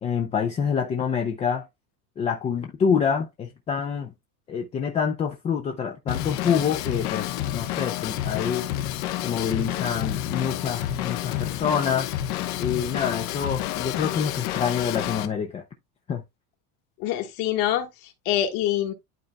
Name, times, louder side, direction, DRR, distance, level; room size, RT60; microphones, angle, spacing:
voice 1, 0.0-1.7 2.2-4.1 4.5-8.7 9.2-12.1 12.6-15.6 16.1-16.2, left 7 dB, 15° left, 0.4 m, -26 dB
Drum kit / Drum, 6.1-15.3, left 13 dB, 70° left, 1.1 m, -29 dB
voice 2, 17.0-18.9, left 12 dB, 50° left, 1.6 m, -25 dB
11.5 x 3.9 x 2.2 m
supercardioid pair, 150°, 46 cm